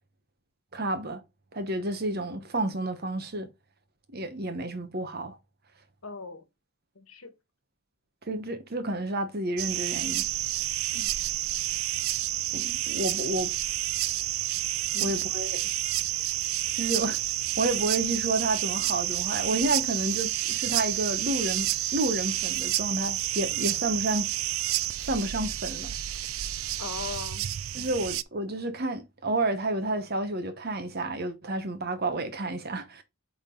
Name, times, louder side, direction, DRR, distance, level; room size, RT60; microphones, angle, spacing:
voice 1, 0.7-1.2 1.5-3.5 4.1-5.4 8.3-10.2 12.5-13.5 15.0-15.6 16.7-17.2 17.6-24.3 25.0-25.9 27.7-33.0, right 2 dB, 45° right, 1.0 m, -30 dB
voice 2, 6.0-6.4 6.9-7.3 10.9-11.1 14.9-15.2 26.8-27.5, left 4 dB, 85° left, 1.3 m, -39 dB
sound 1, 9.6-28.2, right 14 dB, 75° right, 0.4 m, -29 dB
8.4 x 3.7 x 3.7 m
head